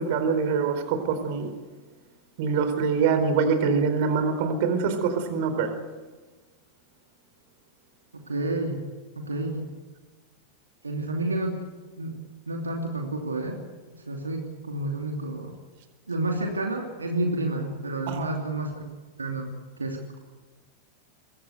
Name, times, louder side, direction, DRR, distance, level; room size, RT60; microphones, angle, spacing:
voice 1, 0.0-1.5 2.4-5.7 18.1-18.3, right 5 dB, 50° right, 9 dB, 4.3 m, -24 dB
voice 2, 8.3-8.8 9.2-9.7 10.8-11.6 12.0-12.2 12.5-13.6 13.9-15.5 16.1-18.9 19.2-19.5 19.8-20.0, right 2 dB, 75° right, 2 dB, 2.8 m, -30 dB
25.0 x 23.0 x 8.0 m, 1.3 s
figure-of-eight pair, 90°, 0 cm